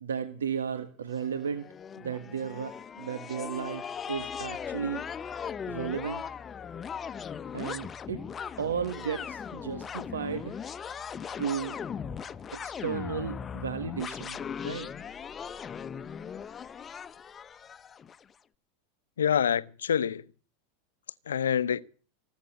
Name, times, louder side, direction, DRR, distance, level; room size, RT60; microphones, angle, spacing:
voice 1, 0.0-1.7 2.0-5.0 5.7-6.2 7.5-8.3 8.6-10.6 11.3-11.8 12.5-14.9, right 7 dB, 90° right, 1.5 m, -34 dB
sound 1, 1.2-18.2, left 7 dB, 25° left, 0.9 m, -39 dB
voice 2, 19.2-20.2 21.3-21.8, left 8 dB, 85° left, 0.8 m, -26 dB
18.5 x 8.2 x 8.0 m
hypercardioid pair, 100°, 0 cm